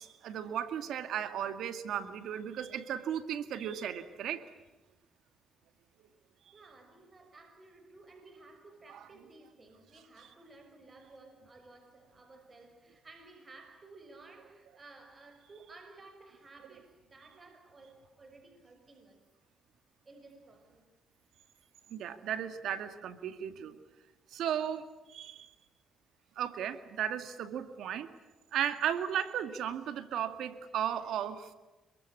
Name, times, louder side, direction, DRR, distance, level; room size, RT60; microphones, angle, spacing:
voice 1, 0.0-4.4 8.9-9.0 21.9-23.8 24.3-25.5 26.4-28.1 28.5-31.5, right 9 dB, 80° right, 10 dB, 2.2 m, -35 dB
voice 2, 6.5-19.3 20.0-20.9, right 3 dB, 30° right, 6 dB, 5.9 m, -55 dB
27.0 x 23.5 x 8.5 m, 1.1 s
cardioid pair, 90°, 0 cm